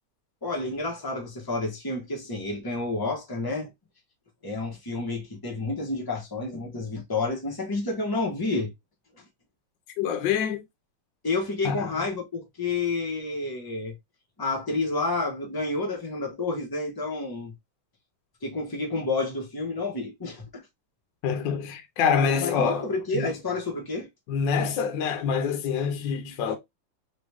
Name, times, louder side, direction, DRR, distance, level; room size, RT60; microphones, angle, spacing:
voice 1, 0.4-3.7 4.4-8.7 11.2-13.9 14.4-17.5 18.4-20.7 22.4-24.1, left 3 dB, 15° left, 0.9 m, -30 dB
voice 2, 10.0-10.6 11.6-11.9 21.2-23.3 24.3-26.6, left 6 dB, 70° left, 1.3 m, -26 dB
3.8 x 3.0 x 3.4 m
omnidirectional pair, 2.3 m